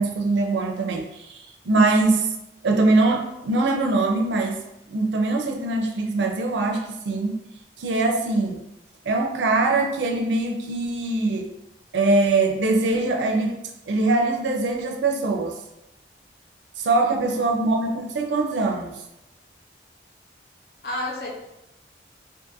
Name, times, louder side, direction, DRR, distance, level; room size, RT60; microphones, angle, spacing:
voice 1, 0.0-2.3 2.6-7.4 7.8-8.6 9.1-11.5 11.9-13.6 13.9-15.6 16.8-19.0, right 2 dB, 80° right, 2 dB, 0.4 m, -22 dB
voice 2, 17.0-17.4 20.8-21.3, left 1 dB, 60° left, -2 dB, 0.6 m, -32 dB
2.6 x 2.4 x 2.6 m, 0.90 s
head